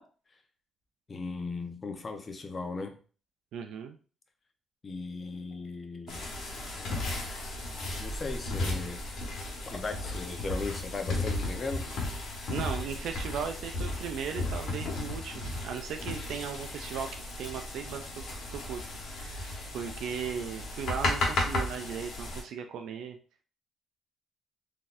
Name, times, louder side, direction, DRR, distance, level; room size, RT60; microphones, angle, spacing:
voice 1, 1.1-3.0 4.8-6.2 8.0-9.0 9.6-11.9, left 3 dB, 35° left, 0.6 m, -37 dB
voice 2, 3.5-4.0 12.5-17.1 17.4-18.0 18.5-18.8 19.1-23.2, right 7 dB, 80° right, 0.3 m, -37 dB
sound 1, 6.1-22.4, left 2 dB, 70° left, 1.1 m, -35 dB
3.9 x 2.7 x 2.4 m
cardioid pair, 90°, 0 cm